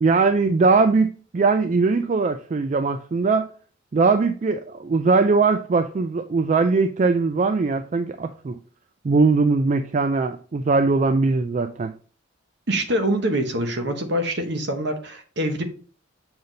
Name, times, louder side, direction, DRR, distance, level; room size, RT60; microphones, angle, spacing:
voice 1, 0.0-3.5 3.9-8.6 9.0-11.9, right 4 dB, 35° right, 0.3 m, -20 dB
voice 2, 12.7-15.6, right 1 dB, 60° right, 1.1 m, -25 dB
6.9 x 4.0 x 4.0 m
head